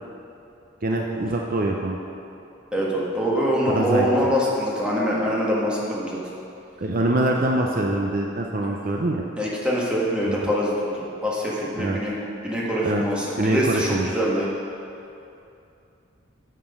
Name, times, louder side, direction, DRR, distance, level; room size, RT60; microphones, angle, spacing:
voice 1, 0.8-2.0 3.7-4.3 6.8-9.2 10.3-10.5 11.8-12.0 12.8-13.0 13.4-14.1, right 1 dB, 45° right, 1 dB, 0.6 m, -24 dB
voice 2, 2.7-6.2 9.4-12.1 12.4-14.5, equal, 5° right, -6 dB, 1.6 m, -24 dB
8.8 x 7.6 x 5.5 m, 2.7 s
head